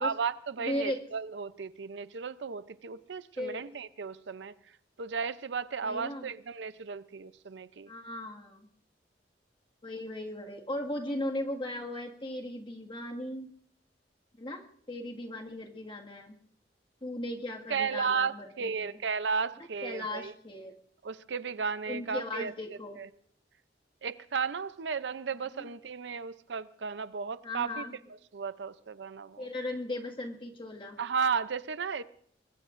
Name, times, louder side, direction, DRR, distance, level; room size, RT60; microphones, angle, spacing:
voice 1, 0.0-4.5 5.0-7.9 17.7-20.3 21.0-22.5 23.0-23.1 24.0-27.8 28.3-29.5 31.0-32.0, right 5 dB, 75° right, 0.6 m, -34 dB
voice 2, 0.6-1.0 3.4-3.6 5.8-6.3 7.9-8.7 9.8-13.5 14.4-16.4 17.0-19.0 19.8-20.8 21.9-23.0 25.5-25.7 27.4-27.9 29.4-31.0, left 1 dB, 30° left, 1.9 m, -37 dB
23.5 x 21.0 x 2.6 m
head